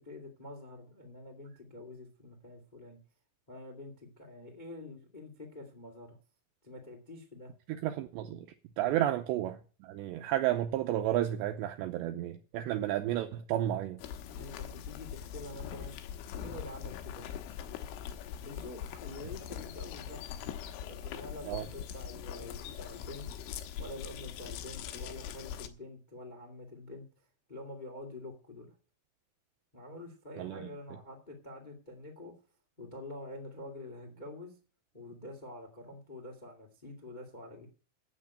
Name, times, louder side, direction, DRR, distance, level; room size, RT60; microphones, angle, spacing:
voice 1, 0.0-3.0 3.5-6.2 6.6-7.5 8.8-9.1 14.3-16.0 16.4-17.3 18.4-20.2 20.8-23.3 23.8-27.0 27.5-28.7 29.7-32.3 32.8-34.5 34.9-37.7, left 2 dB, 35° left, 0.7 m, -47 dB
voice 2, 7.8-8.5 8.8-14.0 21.5-21.7 30.4-30.6, right 13 dB, 80° right, 2.6 m, -32 dB
sound 1, 14.0-25.7, left 9 dB, 80° left, 3.5 m, -42 dB
9.6 x 8.4 x 8.6 m
omnidirectional pair, 5.8 m